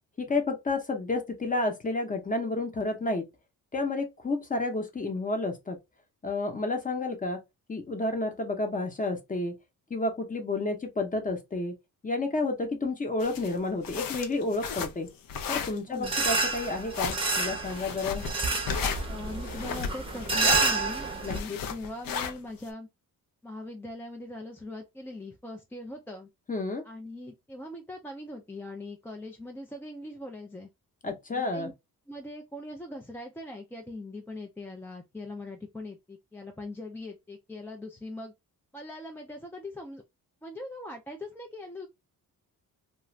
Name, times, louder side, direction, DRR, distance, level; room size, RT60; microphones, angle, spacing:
voice 1, 0.2-3.2 3.7-5.8 6.2-7.4 7.7-9.5 9.9-11.7 12.0-15.1 15.5-18.3 21.2-21.6 26.5-26.8 31.0-31.7, left 2 dB, 25° left, 0.8 m, -30 dB
sound 1, 13.2-22.7, left 6 dB, 70° left, 0.6 m, -34 dB
sound 2, 16.0-21.4, right 3 dB, 15° right, 0.7 m, -29 dB
voice 2, 19.1-22.9 23.4-26.3 26.8-30.7 31.3-31.7 32.1-38.3 38.7-40.0 40.4-41.9, left 2 dB, 5° left, 0.3 m, -41 dB
2.4 x 2.4 x 3.1 m
cardioid pair, 120°, 35 cm